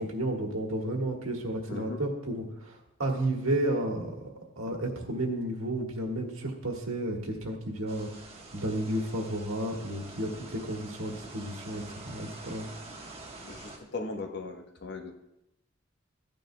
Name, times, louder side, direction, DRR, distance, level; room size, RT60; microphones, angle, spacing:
voice 1, 0.0-4.2 4.6-12.7, right 1 dB, 80° right, 1 dB, 1.6 m, -32 dB
voice 2, 1.7-2.0 13.4-15.1, left 3 dB, 55° left, 3 dB, 1.0 m, -38 dB
sound 1, 7.9-13.8, right 2 dB, 30° right, 1.2 m, -46 dB
14.0 x 9.2 x 2.2 m, 0.88 s
head